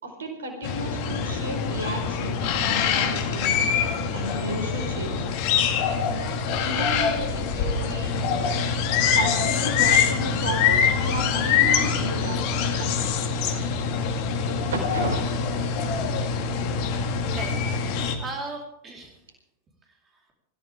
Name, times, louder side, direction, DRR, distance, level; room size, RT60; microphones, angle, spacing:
voice 1, 0.0-3.6 4.1-5.3 5.8-6.2 6.6-8.2 9.1-13.2 14.4-15.2, right 1 dB, 65° right, 4 dB, 4.8 m, -33 dB
sound 1, 0.6-18.2, left 6 dB, 45° left, 2.1 m, -24 dB
voice 2, 17.3-17.9 18.2-19.2 19.8-20.3, right 3 dB, 25° right, 0 dB, 4.2 m, -38 dB
25.5 x 15.5 x 3.7 m, 0.76 s
figure-of-eight pair, 90°, 0 cm